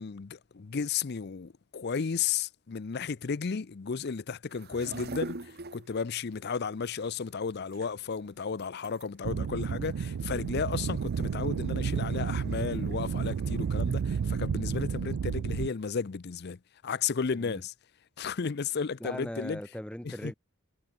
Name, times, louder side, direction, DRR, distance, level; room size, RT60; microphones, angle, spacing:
voice 1, 0.0-17.7 18.2-19.6 20.0-20.3, left 5 dB, 50° left, 0.5 m, -33 dB
sound 1, 4.5-14.5, right 2 dB, 45° right, 1.5 m, -46 dB
sound 2, 9.2-15.7, right 6 dB, 75° right, 0.4 m, -31 dB
voice 2, 19.0-20.3, equal, 5° left, 0.7 m, -39 dB
head